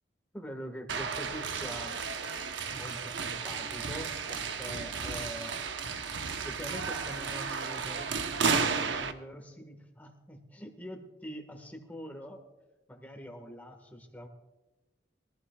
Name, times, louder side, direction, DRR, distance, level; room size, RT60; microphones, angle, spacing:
voice 1, 0.3-2.0 2.7-5.5 6.4-12.4 12.9-14.3, equal, 10° left, 4 dB, 1.5 m, -44 dB
sound 1, 0.9-9.1, right 5 dB, 80° right, 0.9 m, -33 dB
22.5 x 15.0 x 2.3 m, 1.1 s
head